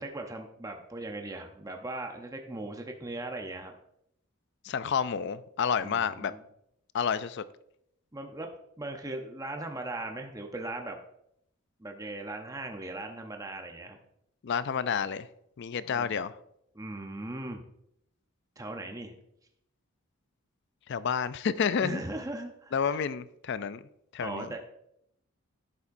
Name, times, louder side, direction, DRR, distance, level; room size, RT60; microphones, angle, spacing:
voice 1, 0.0-3.8 5.8-6.4 8.1-8.5 8.8-11.0 11.8-14.0 15.9-16.2 16.7-17.6 18.6-19.1 21.8-23.0 24.2-24.6, right 2 dB, 15° right, 0.6 m, -39 dB
voice 2, 4.6-6.3 6.9-7.4 14.4-15.3 15.6-16.3 20.9-22.0 22.7-23.8 24.1-24.5, left 7 dB, 50° left, 0.4 m, -30 dB
10.5 x 7.1 x 2.6 m
head